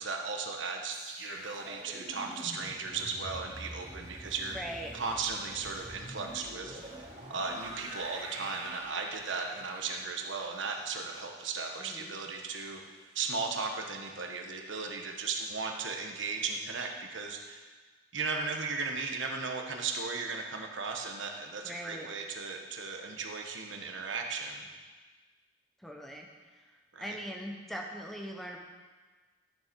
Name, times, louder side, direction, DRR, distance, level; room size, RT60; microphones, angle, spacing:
voice 1, 0.0-4.6 4.9-12.8 13.1-17.6 18.1-24.7 26.9-27.2, right 4 dB, 90° right, 3 dB, 1.2 m, -36 dB
sound 1, 0.9-12.0 12.3-12.6, right 1 dB, 40° right, 2.7 m, -46 dB
voice 2, 4.5-4.9 11.8-12.1 21.6-22.1 25.8-26.3 27.0-28.6, equal, ahead, 0 dB, 0.8 m, -40 dB
12.0 x 7.0 x 4.6 m, 1.4 s
head